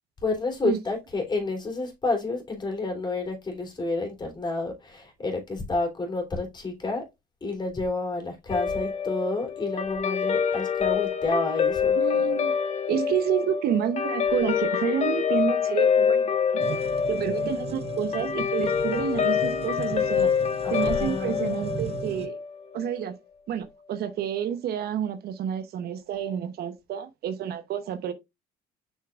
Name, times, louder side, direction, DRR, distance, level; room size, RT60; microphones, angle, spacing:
voice 1, 0.2-7.0 7.4-12.0 20.6-21.6, left 3 dB, 25° left, 3.3 m, -30 dB
Guitar, 8.5-23.1, left 7 dB, 40° left, 1.2 m, -26 dB
voice 2, 12.0-12.5 12.9-16.7 17.1-20.3 20.7-22.4 22.7-23.1 23.5-28.1, right 9 dB, 65° right, 1.0 m, -29 dB
sound 1, 16.6-22.3, right 7 dB, 35° right, 0.8 m, -38 dB
6.6 x 6.5 x 2.4 m
cardioid pair, 110°, 17 cm